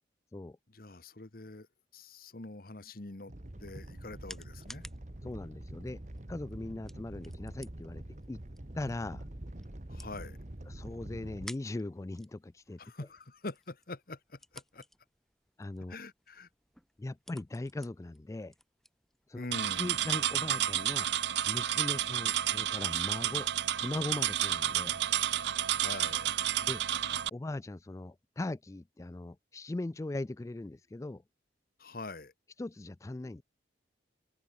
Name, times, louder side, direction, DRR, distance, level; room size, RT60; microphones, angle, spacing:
voice 1, 0.7-1.7 1.9-3.3 3.6-4.8 9.9-10.4 12.8-14.9 15.9-16.5 19.3-20.1 25.7-26.3 31.8-32.3, left 2 dB, 55° left, 1.3 m, -44 dB
Animal, 3.3-11.5, right 1 dB, 40° right, 1.5 m, -45 dB
sound 1, 3.5-19.9, left 1 dB, ahead, 4.2 m, -56 dB
voice 2, 5.2-6.0 6.3-8.0 8.3-8.4 8.7-9.3 10.7-12.8 15.6-16.0 17.0-18.5 19.3-19.5 19.8-21.1 21.4-25.0 26.6-26.8 27.3-31.2 32.6-33.4, left 2 dB, 15° left, 0.3 m, -39 dB
sound 2, 19.5-27.3, right 11 dB, 75° right, 0.6 m, -31 dB
head